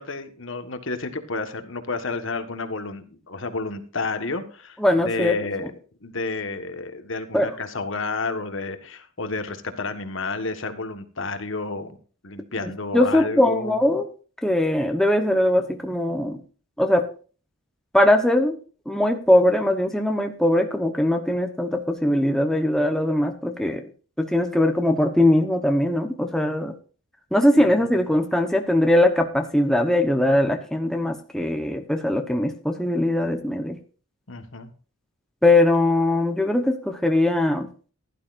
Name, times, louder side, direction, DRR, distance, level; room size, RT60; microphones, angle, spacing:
voice 1, 0.0-5.7 6.0-12.0 12.2-13.8 27.6-27.9 34.3-34.7, left 3 dB, 60° left, 8 dB, 1.5 m, -31 dB
voice 2, 4.8-5.4 7.3-7.5 12.9-14.1 14.4-16.4 16.8-17.0 17.9-18.6 18.9-23.9 24.2-26.7 27.3-33.8 35.4-37.7, left 1 dB, ahead, 4 dB, 1.0 m, -21 dB
16.0 x 11.5 x 2.6 m, 0.39 s
head